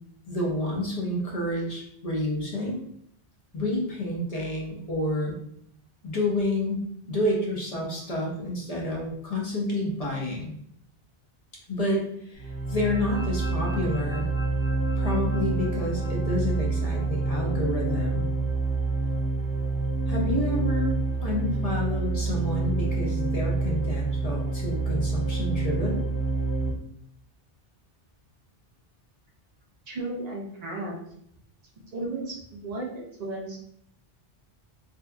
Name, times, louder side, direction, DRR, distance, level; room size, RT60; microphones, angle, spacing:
voice 1, 0.3-2.8 3.5-5.4 6.0-10.5 11.7-14.2 15.0-18.3 20.1-20.9 21.2-26.0, left 1 dB, 40° left, -2 dB, 0.7 m, -29 dB
sound 1, 12.4-26.7, right 3 dB, 25° right, 0.8 m, -27 dB
voice 2, 29.9-31.0 31.9-33.6, right 2 dB, 50° right, -1 dB, 0.5 m, -34 dB
2.7 x 2.4 x 2.2 m, 0.70 s
omnidirectional pair, 1.0 m